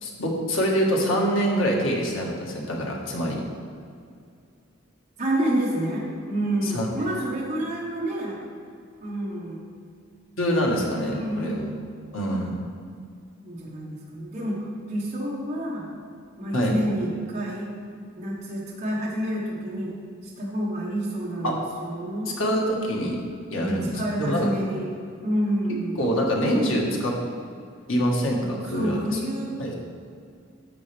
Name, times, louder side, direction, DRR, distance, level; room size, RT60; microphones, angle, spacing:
voice 1, 0.0-3.4 6.6-6.9 10.4-11.7 12.1-12.5 16.5-16.7 21.4-21.5 22.4-23.2 23.5-23.9 24.2-24.5 26.0-27.1 27.9-29.2 29.6-29.7, equal, 90° left, -1 dB, 1.6 m, -25 dB
voice 2, 5.2-8.4 9.0-9.6 11.1-11.5 12.3-12.4 13.4-15.9 16.4-17.7 18.1-19.9 20.2-22.6 23.6-24.9 25.2-26.1 28.7-29.7, right 1 dB, 35° right, -5 dB, 1.3 m, -29 dB
10.5 x 7.1 x 3.4 m, 2.3 s
head